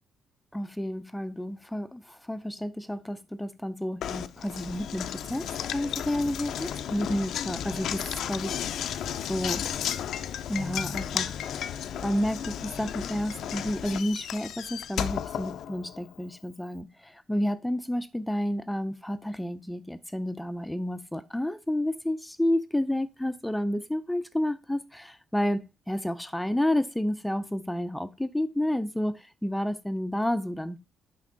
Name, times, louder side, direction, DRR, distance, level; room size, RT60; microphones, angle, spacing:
voice 1, 0.5-8.8 9.3-9.7 10.5-11.4 12.0-30.8, left 1 dB, 5° left, 0.4 m, -30 dB
Knock, 4.0-16.2, left 9 dB, 75° left, 0.4 m, -34 dB
5.9 x 5.3 x 3.8 m
cardioid pair, 90°, 0 cm